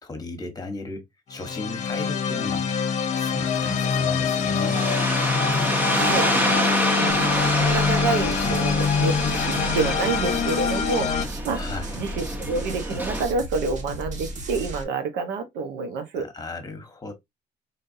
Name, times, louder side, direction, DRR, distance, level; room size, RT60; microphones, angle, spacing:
voice 1, 0.0-1.0 1.3-2.7 3.2-4.9 8.4-8.6 11.5-12.0 16.1-17.1, left 2 dB, 20° left, 1.2 m, -36 dB
sound 1, 1.3-11.2, left 6 dB, 45° left, 0.8 m, -25 dB
sound 2, 3.5-13.2, equal, 10° right, 0.9 m, -27 dB
voice 2, 5.9-9.1 9.5-11.6 12.0-16.3, right 4 dB, 90° right, 1.0 m, -28 dB
sound 3, 7.1-14.8, right 1 dB, 45° right, 1.2 m, -34 dB
3.9 x 3.5 x 2.7 m
cardioid pair, 110°, 17 cm